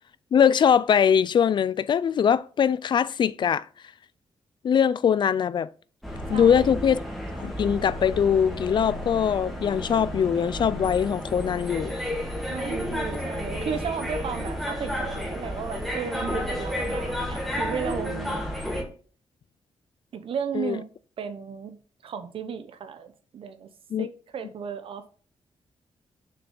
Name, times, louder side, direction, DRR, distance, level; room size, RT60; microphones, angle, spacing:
voice 1, 0.3-3.7 4.6-5.7 6.3-7.0 7.4-12.0 20.5-20.8 23.9-24.1, left 8 dB, 50° left, 0.3 m, -22 dB
sound 1, 6.0-18.8, equal, ahead, 1.6 m, -32 dB
voice 2, 6.3-6.8 12.5-18.4 20.1-20.9 21.2-23.7 24.0-25.1, right 7 dB, 65° right, 1.0 m, -34 dB
6.7 x 5.8 x 3.8 m
wide cardioid pair, 140°, 10 cm